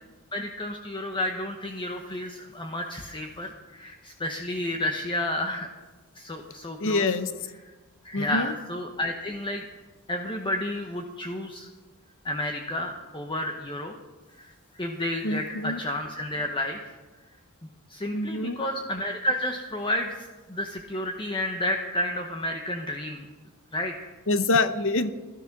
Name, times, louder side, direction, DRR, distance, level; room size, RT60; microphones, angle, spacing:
voice 1, 0.3-5.7 6.1-7.1 8.0-9.6 10.1-11.7 12.2-13.9 14.4-16.9 17.9-23.3 23.7-24.1, left 1 dB, 20° left, 3 dB, 1.0 m, -31 dB
voice 2, 6.8-7.3 8.1-8.5 15.2-15.8 18.1-18.6 24.3-25.1, left 3 dB, 65° left, 11 dB, 1.0 m, -25 dB
16.5 x 12.5 x 6.0 m, 1.3 s
head